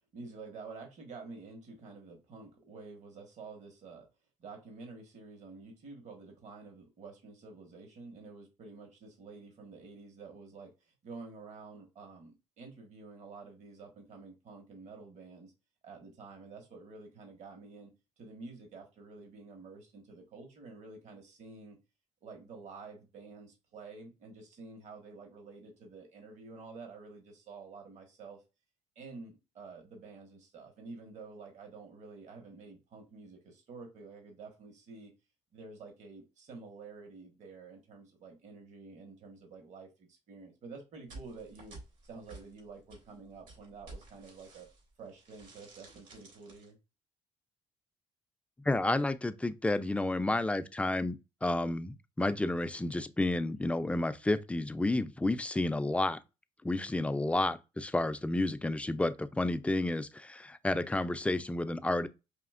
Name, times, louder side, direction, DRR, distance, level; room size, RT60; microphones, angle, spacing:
voice 1, 0.1-4.1 4.4-15.5 15.8-17.9 18.2-21.8 22.2-28.4 28.9-35.1 35.5-41.8 42.0-44.7 45.0-46.8, right 4 dB, 65° right, 1.3 m, -49 dB
sound 1, 41.1-44.9 45.2-46.7, right 2 dB, 80° right, 2.2 m, -52 dB
voice 2, 48.7-51.2 51.4-56.2 56.6-62.1, left 2 dB, 10° left, 0.3 m, -31 dB
5.0 x 2.9 x 2.4 m
cardioid pair, 110°, 13 cm